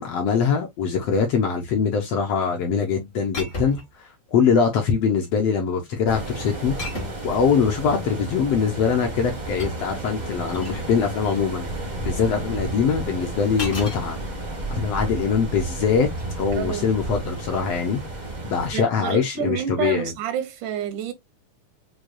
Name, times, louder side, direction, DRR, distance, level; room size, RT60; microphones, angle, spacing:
voice 1, 0.0-3.8 4.3-6.8 7.2-11.7 12.0-14.2 14.7-16.1 16.4-18.0 18.4-20.1, left 6 dB, 70° left, 1.5 m, -22 dB
sound 1, 3.3-4.0 4.9-5.3 6.8-7.3 9.0-10.8 13.6-14.0 16.0-16.3, left 1 dB, 45° left, 0.8 m, -34 dB
sound 2, 6.1-18.7, right 2 dB, 45° right, 0.5 m, -32 dB
voice 2, 16.5-16.9 18.7-21.1, right 9 dB, 80° right, 2.3 m, -29 dB
6.3 x 2.2 x 2.6 m
omnidirectional pair, 3.5 m